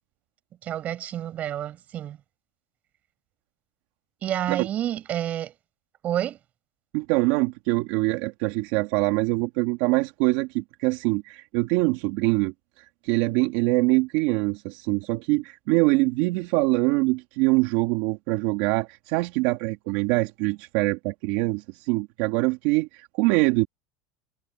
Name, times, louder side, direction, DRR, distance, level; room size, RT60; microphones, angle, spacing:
voice 1, 0.6-2.2 4.2-5.5 6.0-6.4, right 11 dB, 40° right, 5.1 m, -29 dB
voice 2, 6.9-12.5 13.0-23.7, right 22 dB, 70° right, 1.9 m, -24 dB
supercardioid pair, 130°, 4 cm